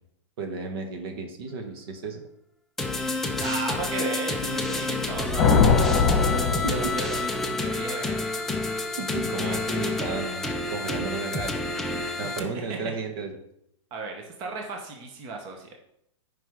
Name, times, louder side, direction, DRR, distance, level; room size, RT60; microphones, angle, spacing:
voice 1, 0.4-2.2 5.9-6.9 9.0-11.5 12.2-13.4, right 4 dB, 50° right, 5 dB, 1.2 m, -34 dB
sound 1, 2.8-12.4, left 2 dB, ahead, 0.4 m, -29 dB
voice 2, 3.4-5.6 6.4-7.3 7.6-8.3 12.2-12.9 13.9-15.7, right 3 dB, 25° right, 2 dB, 1.1 m, -35 dB
sound 2, 4.9-7.5, left 5 dB, 25° left, 1.3 m, -22 dB
9.1 x 5.4 x 3.6 m, 0.77 s
hypercardioid pair, 155°, 16 cm